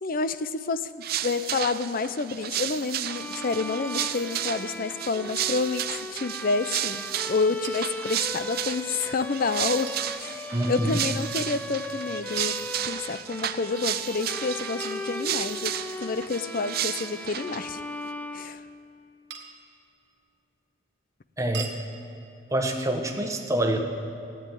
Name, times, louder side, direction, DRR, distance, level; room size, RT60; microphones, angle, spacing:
voice 1, 0.0-12.6 12.8-15.7 16.0-17.8 18.3-18.6, left 4 dB, 50° left, 13 dB, 0.6 m, -29 dB
sound 1, 1.0-17.7, right 11 dB, 55° right, 0.6 m, -33 dB
Bowed string instrument, 3.0-19.0, left 2 dB, 10° left, 0.5 m, -38 dB
sound 2, 7.6-7.8 9.9-10.1 12.4-13.3 14.8-15.7 17.0-17.3 19.3-19.7 21.5-21.8, right 7 dB, 75° right, 1.6 m, -40 dB
voice 2, 10.5-11.0 21.4-21.7 22.5-23.8, right 1 dB, 20° right, 3 dB, 1.3 m, -26 dB
15.0 x 9.1 x 9.1 m, 2.7 s
head